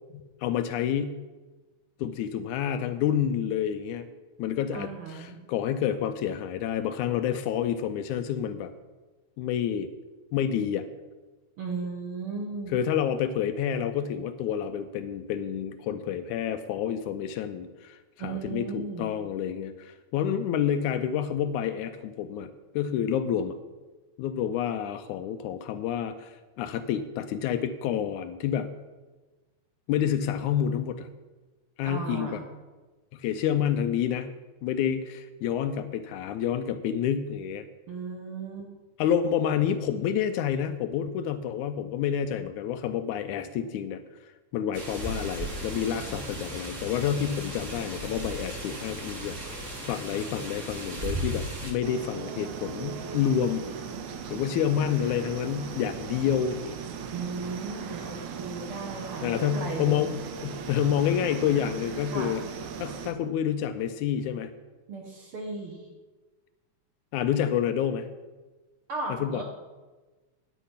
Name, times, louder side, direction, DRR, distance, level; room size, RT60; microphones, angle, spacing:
voice 1, 0.1-1.2 2.0-4.1 4.4-8.7 9.4-9.9 10.3-10.8 12.7-23.6 24.2-28.7 29.9-31.1 31.8-32.4 33.1-34.3 34.6-37.7 39.0-44.0 44.5-53.7 54.3-56.8 59.2-62.4 62.8-64.5 67.1-68.1 69.1-69.4, left 9 dB, 80° left, 10 dB, 1.9 m, -29 dB
voice 2, 4.7-5.4 11.6-12.7 18.2-19.1 31.8-32.4 37.9-38.7 57.1-60.0 62.1-62.4 64.9-65.9 68.9-69.4, right 4 dB, 50° right, 1 dB, 2.2 m, -36 dB
sound 1, 44.7-51.7, right 1 dB, 30° right, 1.8 m, -36 dB
sound 2, 51.8-63.1, right 6 dB, 75° right, 2.2 m, -38 dB
10.5 x 9.1 x 5.7 m, 1.2 s
omnidirectional pair, 3.6 m